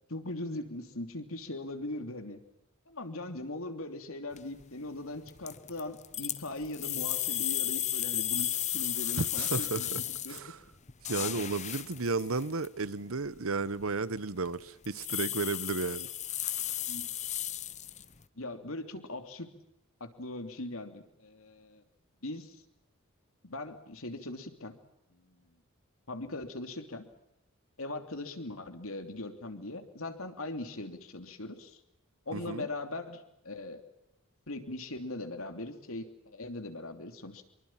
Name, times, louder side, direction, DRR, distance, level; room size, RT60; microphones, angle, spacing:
voice 1, 0.1-2.4 2.9-10.4 16.9-17.1 18.4-19.5 20.0-21.8 22.2-22.6 23.4-24.8 25.1-25.4 26.1-27.0 27.8-31.8 32.3-33.8 34.5-37.5, left 2 dB, 75° left, 3.1 m, -40 dB
sound 1, 4.3-4.6 5.3-10.4 10.7-12.7 13.2-13.3 13.8-14.2 14.4-14.5 14.8-18.2, left 12 dB, 35° left, 0.9 m, -34 dB
voice 2, 9.2-10.0 10.3-10.6 11.1-16.1 32.3-32.7, right 3 dB, 75° right, 1.1 m, -33 dB
25.5 x 23.5 x 7.4 m
head